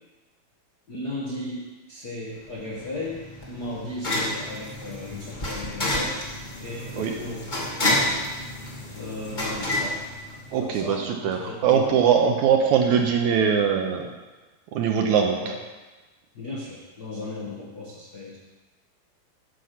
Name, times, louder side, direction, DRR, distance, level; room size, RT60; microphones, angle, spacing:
voice 1, 0.9-6.3 6.6-7.5 8.9-10.1 10.6-12.3 12.8-13.2 15.4-15.6 16.3-18.4, left 2 dB, 70° left, -4 dB, 0.9 m, -36 dB
sound 1, 2.5-10.8, left 1 dB, 50° left, 0.5 m, -30 dB
voice 2, 10.5-14.1 14.7-15.4, right 7 dB, 75° right, 3 dB, 1.9 m, -21 dB
9.5 x 6.8 x 5.8 m, 1.2 s
omnidirectional pair, 3.9 m